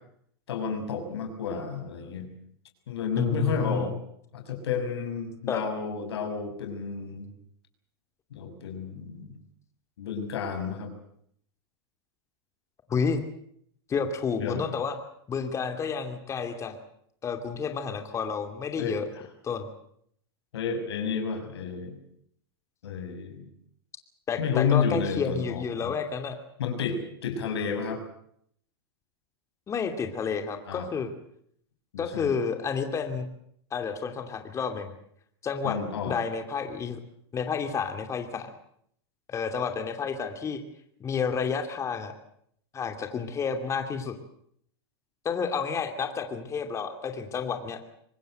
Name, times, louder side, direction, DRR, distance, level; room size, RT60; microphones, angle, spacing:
voice 1, 0.5-2.3 2.9-3.9 4.3-7.3 8.3-9.3 10.0-10.9 14.4-14.6 18.8-19.0 20.5-22.0 22.8-23.5 24.4-25.9 26.6-28.0 30.7-30.9 31.9-32.3 35.6-36.1, left 6 dB, 85° left, 5 dB, 6.4 m, -31 dB
voice 2, 3.2-3.9 5.5-5.6 12.9-13.2 13.9-14.9 15.3-16.8 17.2-19.1 19.4-19.7 24.3-26.4 29.7-31.1 32.0-33.3 33.7-34.9 35.4-35.8 36.1-37.0 37.3-38.5 39.3-40.6 41.0-42.1 42.7-44.1 45.2-47.8, left 6 dB, 20° left, 6 dB, 2.7 m, -30 dB
24.5 x 20.0 x 8.0 m, 0.68 s
hypercardioid pair, 130°, 13 cm